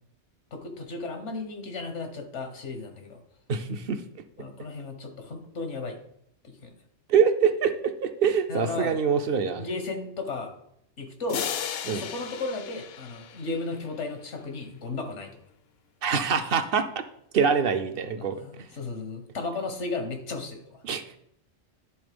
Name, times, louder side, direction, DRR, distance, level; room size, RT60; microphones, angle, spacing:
voice 1, 0.5-3.2 4.4-6.0 6.4-6.7 8.5-10.5 11.0-11.4 11.8-15.3 18.2-20.8, left 3 dB, 85° left, 6 dB, 1.6 m, -35 dB
voice 2, 3.5-4.0 7.1-9.6 11.9-12.0 16.0-16.9 17.3-18.4 20.8-21.2, right 6 dB, 60° right, 9 dB, 0.8 m, -24 dB
sound 1, 11.3-14.0, left 8 dB, 65° left, 0.8 m, -35 dB
10.5 x 3.8 x 5.1 m, 0.72 s
omnidirectional pair, 1.2 m